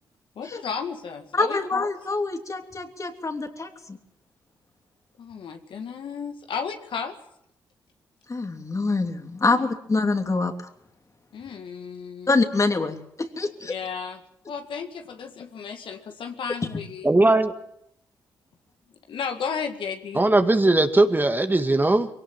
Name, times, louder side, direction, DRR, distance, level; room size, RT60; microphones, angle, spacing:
voice 1, 0.4-1.9 5.2-7.2 9.4-9.7 11.3-12.3 13.7-14.2 14.5-17.1 19.1-20.2, left 6 dB, 65° left, 5 dB, 2.0 m, -33 dB
voice 2, 1.3-4.0 8.3-10.7 12.3-13.7, left 3 dB, 35° left, 5 dB, 3.1 m, -25 dB
voice 3, 17.0-17.5 20.2-22.1, right 2 dB, 20° right, 7 dB, 2.0 m, -19 dB
23.0 x 18.0 x 7.6 m, 0.75 s
hypercardioid pair, 40°, 9 cm